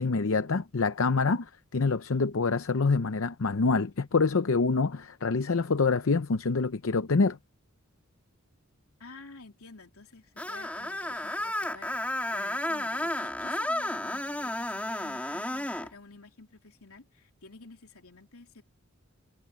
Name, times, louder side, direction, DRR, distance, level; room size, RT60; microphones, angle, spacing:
voice 1, 0.0-7.4, left 4 dB, 65° left, 0.7 m, -26 dB
voice 2, 9.0-18.6, left 3 dB, 85° left, 3.3 m, -51 dB
Screech, 10.4-15.9, left 1 dB, 5° left, 1.8 m, -32 dB
head